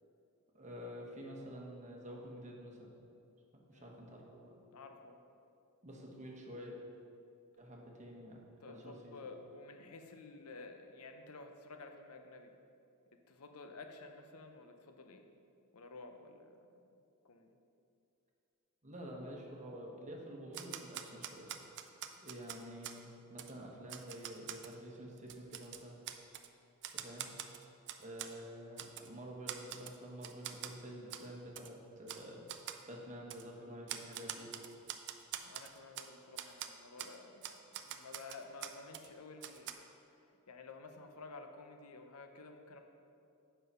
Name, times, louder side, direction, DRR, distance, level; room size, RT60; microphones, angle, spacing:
voice 1, 0.5-2.9 3.7-4.5 5.8-6.8 7.6-8.4 8.7-9.2 18.8-21.5 22.2-26.0 26.9-27.3 28.0-32.5 32.9-34.5, equal, 35° right, -1 dB, 1.2 m, -49 dB
voice 2, 4.7-5.2 8.6-12.5 13.3-15.3 15.7-16.8 17.2-17.6 22.2-22.3 35.4-39.9 40.5-42.8, left 3 dB, 75° left, 5 dB, 0.7 m, -52 dB
Typewriter, 20.5-23.0 23.4-23.5 23.9-24.7 25.2-26.5 26.8-28.3 28.8-29.1 29.5-30.0 30.2-30.7 31.1-31.3 31.6-31.7 32.1-32.2 32.5-32.8 33.3-33.4 33.9-36.1 36.4-36.7 37.0-37.1 37.4-39.1 39.4-39.7, right 11 dB, 55° right, 0.5 m, -45 dB
7.8 x 5.6 x 5.5 m, 2.6 s
head